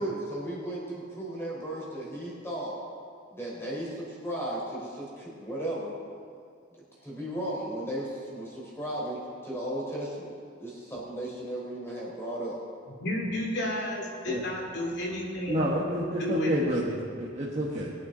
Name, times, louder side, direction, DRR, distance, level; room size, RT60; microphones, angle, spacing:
voice 1, 0.0-2.8 3.3-5.9 7.0-10.3 10.6-12.6, right 1 dB, 15° left, -5 dB, 4.0 m, -35 dB
voice 2, 13.0-15.8 16.2-16.6, left 1 dB, 60° left, -2 dB, 2.7 m, -31 dB
voice 3, 15.5-17.9, right 1 dB, 35° right, -5 dB, 1.3 m, -29 dB
22.0 x 9.0 x 3.9 m, 2.3 s
head